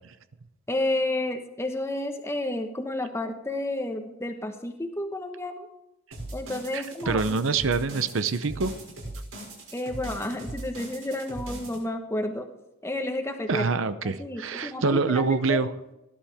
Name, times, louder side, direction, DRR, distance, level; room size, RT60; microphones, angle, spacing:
voice 1, 0.7-5.7 6.3-7.4 9.7-12.5 12.8-13.7 14.2-15.6, left 1 dB, 15° left, 5 dB, 1.2 m, -31 dB
sound 1, 6.1-11.8, right 1 dB, 90° right, 6.2 m, -39 dB
voice 2, 6.7-8.7 13.5-15.7, right 4 dB, 70° right, 12 dB, 0.7 m, -25 dB
17.5 x 11.5 x 3.5 m, 0.93 s
head